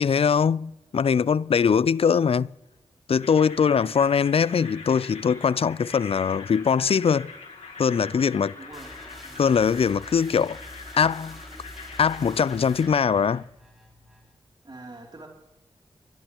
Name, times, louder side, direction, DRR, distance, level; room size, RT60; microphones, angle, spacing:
voice 1, 0.0-2.5 3.1-7.3 7.8-8.5 9.4-10.6 11.0-11.4 12.0-13.4, left 6 dB, 60° left, 0.4 m, -22 dB
sound 1, 3.1-13.3, left 4 dB, 90° left, 2.6 m, -43 dB
voice 2, 3.6-4.0 8.0-8.9 9.2-9.4 14.6-15.3, right 2 dB, 40° right, 3.1 m, -45 dB
sound 2, 8.7-14.3, equal, ahead, 5.5 m, -46 dB
29.5 x 12.0 x 3.0 m
cardioid pair, 40°, 11 cm